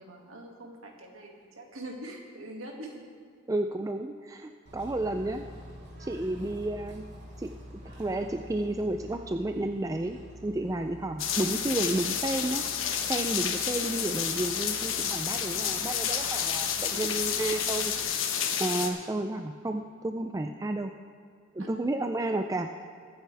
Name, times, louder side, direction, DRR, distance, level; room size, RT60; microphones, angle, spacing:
voice 1, 0.0-3.0 21.6-21.9, right 1 dB, 85° right, 0 dB, 2.1 m, -44 dB
voice 2, 3.5-5.5 6.0-7.1 7.4-7.5 8.0-12.6 13.1-18.2 18.6-20.9 21.5-22.9, right 2 dB, 15° right, 5 dB, 0.3 m, -31 dB
Bird / Train, 4.7-18.0, equal, 55° right, 3.4 m, -48 dB
sound 1, 11.2-18.9, left 8 dB, 75° left, 1.1 m, -30 dB
22.0 x 9.2 x 3.4 m, 2.3 s
head